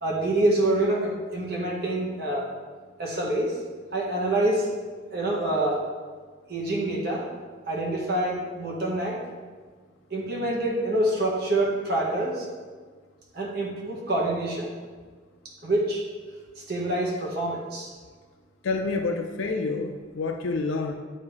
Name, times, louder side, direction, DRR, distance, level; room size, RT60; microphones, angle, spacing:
voice 1, 0.0-2.5 3.0-3.6 3.9-4.7 5.1-5.8 6.5-7.3 7.7-9.2 10.1-12.5 13.3-14.7 15.6-16.0 16.7-17.9, right 1 dB, 50° right, -3 dB, 1.2 m, -26 dB
voice 2, 18.6-21.0, left 3 dB, 80° left, 4 dB, 0.4 m, -28 dB
8.3 x 2.8 x 4.8 m, 1.5 s
head